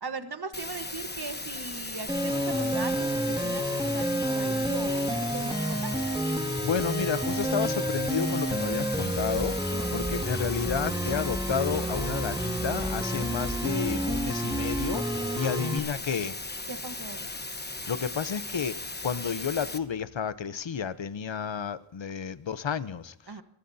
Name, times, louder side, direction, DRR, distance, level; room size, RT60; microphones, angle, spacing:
voice 1, 0.0-5.9 9.7-9.9 15.4-15.9 16.7-17.3 23.3-23.4, right 4 dB, 55° right, 1.3 m, -39 dB
sound 1, 0.5-19.8, left 2 dB, 20° left, 1.1 m, -37 dB
sound 2, 2.1-15.8, right 1 dB, 10° right, 2.1 m, -30 dB
voice 2, 6.6-15.0 15.3-16.4 17.9-23.4, left 7 dB, 75° left, 0.8 m, -31 dB
25.5 x 16.5 x 2.8 m
wide cardioid pair, 55°, 46 cm